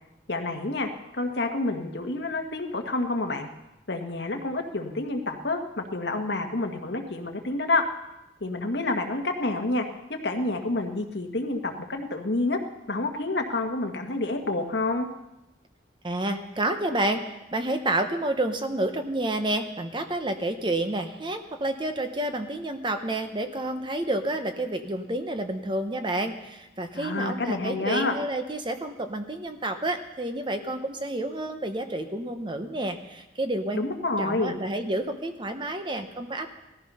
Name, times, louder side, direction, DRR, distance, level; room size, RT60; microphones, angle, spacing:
voice 1, 0.3-0.9 1.2-3.5 3.9-7.8 8.4-9.8 10.2-12.6 12.9-15.1 26.9-28.2 33.7-34.6, left 2 dB, 65° left, 4 dB, 1.6 m, -28 dB
voice 2, 16.0-17.2 17.5-33.8 34.2-36.5, right 1 dB, 25° right, 7 dB, 1.0 m, -29 dB
18.0 x 14.0 x 5.6 m, 0.95 s
head